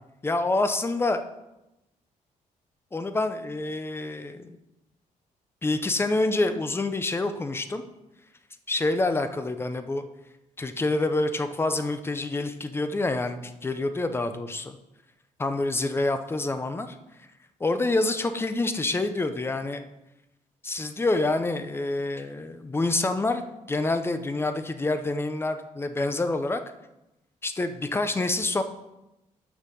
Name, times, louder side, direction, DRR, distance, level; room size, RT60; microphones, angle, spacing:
voice 1, 0.2-1.2 2.9-4.6 5.6-7.8 8.7-10.0 10.6-14.8 15.4-17.0 17.6-19.8 20.6-23.4 23.7-26.6 27.4-28.6, left 2 dB, 15° left, 9 dB, 0.6 m, -27 dB
6.7 x 5.5 x 6.3 m, 0.93 s
cardioid pair, 130°, 14 cm